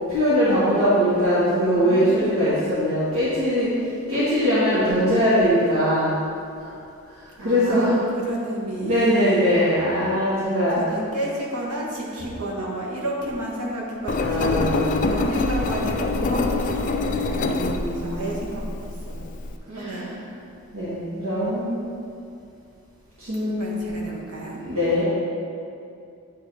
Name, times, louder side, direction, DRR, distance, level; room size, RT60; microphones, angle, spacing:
voice 1, 0.1-3.7 4.1-6.1 6.6-6.7 7.1-8.0 8.8-10.8 14.1-15.1 17.3-18.2 19.7-20.0 20.7-21.9 23.2-23.8 24.6-25.0, equal, 75° right, -12 dB, 1.6 m, -21 dB
voice 2, 1.3-2.5 7.4-9.4 10.7-14.6 15.0-19.3 19.7-20.2 23.4-24.6, right 1 dB, 90° right, -4 dB, 1.4 m, -31 dB
Engine, 14.1-19.6, left 3 dB, 35° left, 0.3 m, -25 dB
9.0 x 3.8 x 4.1 m, 2.5 s
head